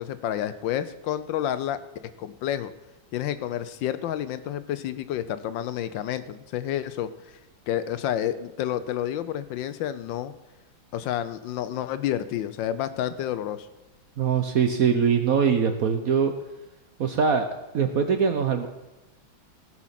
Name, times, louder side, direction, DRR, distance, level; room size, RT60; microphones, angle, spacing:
voice 1, 0.0-2.7 3.1-7.1 7.7-10.3 10.9-13.7, left 11 dB, 75° left, 13 dB, 1.3 m, -29 dB
voice 2, 14.2-16.3 17.0-17.5 17.7-18.7, right 6 dB, 60° right, 6 dB, 0.9 m, -22 dB
17.0 x 6.1 x 5.8 m, 1.0 s
omnidirectional pair, 2.2 m